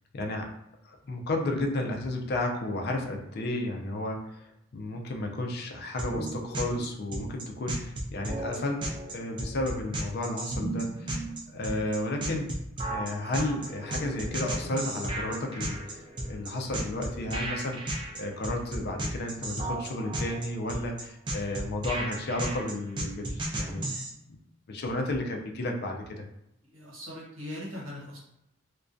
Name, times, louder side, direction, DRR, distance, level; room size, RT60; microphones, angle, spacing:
voice 1, 0.1-0.5 0.8-12.5 12.9-24.4 24.7-26.3, left 1 dB, 55° left, 2 dB, 0.4 m, -33 dB
sound 1, 6.0-24.1, right 1 dB, 25° right, 0.3 m, -34 dB
sound 2, 13.6-19.8, left 1 dB, ahead, 0.7 m, -50 dB
voice 2, 26.7-28.2, left 1 dB, 90° right, -4 dB, 1.1 m, -40 dB
2.2 x 2.2 x 2.5 m, 0.82 s
head